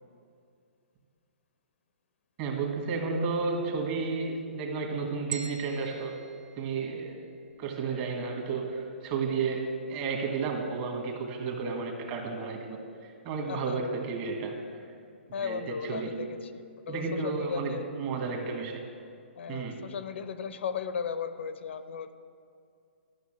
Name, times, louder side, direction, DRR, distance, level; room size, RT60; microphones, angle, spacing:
voice 1, 2.4-6.2 6.6-7.2 7.6-14.6 15.4-16.3 16.9-18.9 19.5-19.8, right 4 dB, 35° right, 2 dB, 1.7 m, -32 dB
sound 1, 5.3-7.5, right 6 dB, 10° right, 0.6 m, -43 dB
voice 2, 13.5-13.8 15.3-17.9 19.4-22.1, left 6 dB, 70° left, 11 dB, 0.7 m, -36 dB
13.0 x 6.3 x 7.5 m, 2.4 s
hypercardioid pair, 150°, 7 cm